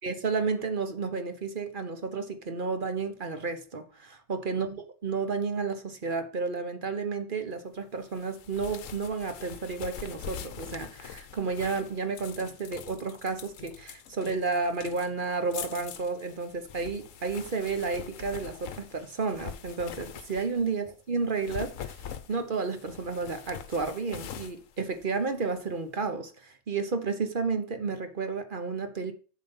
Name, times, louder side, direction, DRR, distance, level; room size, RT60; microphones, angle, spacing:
voice 1, 0.0-21.9 22.3-29.1, right 4 dB, 40° right, 1.0 m, -32 dB
sound 1, 8.1-20.7 21.3-25.6, left 8 dB, 65° left, 1.1 m, -44 dB
7.3 x 5.7 x 5.6 m
omnidirectional pair, 1.6 m